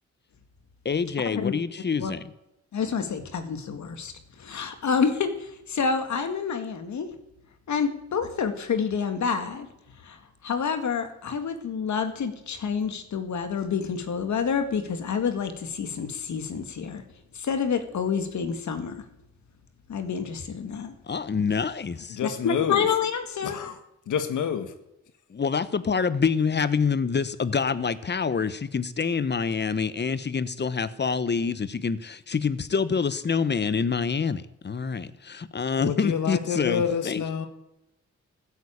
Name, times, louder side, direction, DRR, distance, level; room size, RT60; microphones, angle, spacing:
voice 1, 0.8-2.2 21.1-22.2 25.3-37.2, left 5 dB, 35° left, 1.0 m, -26 dB
voice 2, 2.7-7.1 7.7-9.7 10.0-17.0 17.3-19.0 19.9-20.9 22.2-23.6, left 6 dB, 70° left, 1.9 m, -28 dB
voice 3, 22.1-22.8 23.4-23.8 24.1-24.7 35.8-37.5, left 8 dB, 90° left, 1.5 m, -28 dB
15.0 x 8.3 x 8.6 m
cardioid pair, 85°, 30 cm